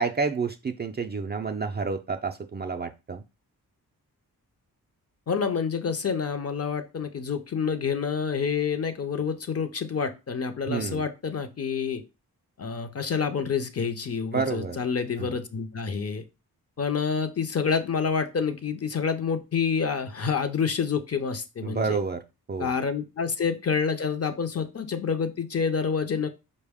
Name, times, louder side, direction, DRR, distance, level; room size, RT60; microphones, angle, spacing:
voice 1, 0.0-3.2 10.7-11.1 14.3-14.8 15.2-15.4 21.6-22.2 22.5-22.7, right 5 dB, 30° right, 5 dB, 0.3 m, -29 dB
voice 2, 5.3-12.0 12.6-16.2 16.8-22.0 22.6-26.3, left 6 dB, 40° left, 8 dB, 0.6 m, -28 dB
4.5 x 2.2 x 3.5 m, 0.28 s
cardioid pair, 60°, 38 cm